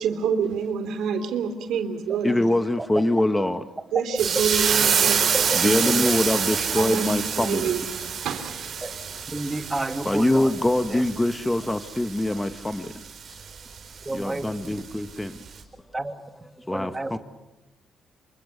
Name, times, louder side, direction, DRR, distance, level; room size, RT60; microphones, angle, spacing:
voice 1, 0.0-2.4 3.9-6.1 6.7-7.8 8.2-8.8, right 6 dB, 80° right, 8 dB, 3.2 m, -27 dB
voice 2, 2.2-3.6 5.6-7.2 7.5-7.6 10.1-12.5 14.2-15.0 16.7-16.9, left 1 dB, 10° left, 9 dB, 1.2 m, -23 dB
sound 1, 4.2-15.1 15.5-15.6, right 6 dB, 55° right, 5.1 m, -27 dB
voice 3, 4.7-5.1 5.8-6.1 8.8-8.9 9.3-10.5 10.9-11.0 14.1-14.8 15.9-16.1 16.7-17.2, right 2 dB, 15° right, 6 dB, 2.3 m, -31 dB
27.0 x 25.0 x 6.9 m, 0.99 s
cardioid pair, 90°, 0 cm